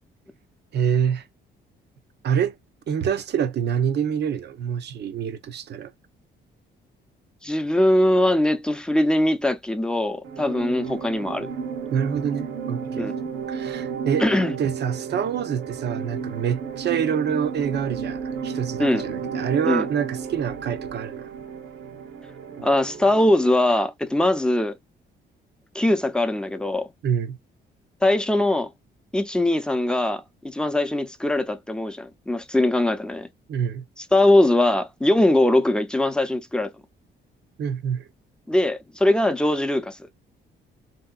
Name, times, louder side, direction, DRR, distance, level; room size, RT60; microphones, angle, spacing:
voice 1, 0.7-1.2 2.2-2.6 2.9-5.9 11.9-13.1 13.5-21.3 27.0-27.4 33.5-33.8 37.6-38.0, right 8 dB, 60° right, 0.6 m, -26 dB
voice 2, 7.4-11.5 13.0-13.1 14.2-14.5 18.8-19.9 22.6-24.7 25.7-26.9 28.0-28.7 29.1-33.3 34.0-36.7 38.5-40.0, left 1 dB, 5° left, 0.6 m, -21 dB
sound 1, 10.2-23.6, right 6 dB, 90° right, 1.0 m, -33 dB
3.3 x 2.8 x 2.2 m
cardioid pair, 90°, 20 cm